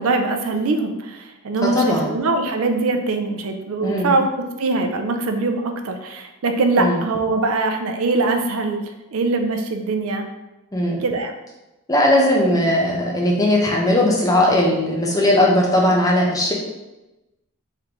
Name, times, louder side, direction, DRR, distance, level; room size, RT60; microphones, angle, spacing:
voice 1, 0.0-4.2 4.6-8.8 9.1-10.3 11.0-11.3, right 3 dB, 70° right, 5 dB, 0.4 m, -22 dB
voice 2, 1.6-2.1 3.8-4.1 6.8-7.0 10.7-11.0 11.9-16.5, left 1 dB, 15° left, -2 dB, 0.6 m, -18 dB
3.7 x 3.3 x 3.0 m, 1.0 s
head